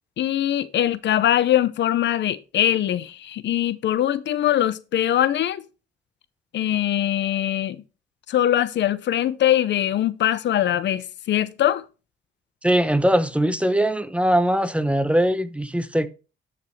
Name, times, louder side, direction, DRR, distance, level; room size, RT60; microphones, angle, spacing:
voice 1, 0.2-5.6 6.5-7.8 8.3-11.8, left 11 dB, 65° left, 0.7 m, -22 dB
voice 2, 12.6-16.1, right 1 dB, 5° right, 0.8 m, -21 dB
12.0 x 5.3 x 3.1 m
cardioid pair, 90°, 20 cm